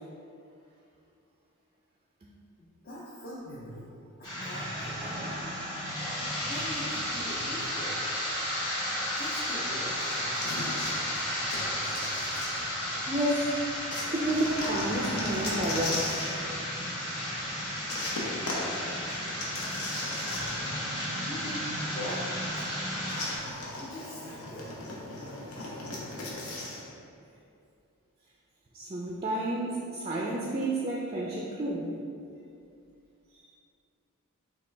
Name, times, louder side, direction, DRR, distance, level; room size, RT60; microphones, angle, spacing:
voice 1, 2.6-3.9 4.2-5.2 6.4-8.0 9.2-10.5 21.1-22.7 23.7-24.7, left 1 dB, 40° left, -7 dB, 0.5 m, -42 dB
sound 1, 4.2-23.4, equal, 20° left, 0.9 m, -33 dB
sound 2, 10.4-13.1 13.9-16.4 17.9-20.8 21.1-21.2 23.1-26.8, left 2 dB, 80° left, 0.8 m, -37 dB
voice 2, 11.8-12.2 13.1-13.5 14.1-16.1 18.8-19.0 25.6-25.7 28.7-31.9, right 1 dB, 25° right, -3 dB, 0.3 m, -31 dB
5.7 x 2.3 x 3.3 m, 2.5 s
head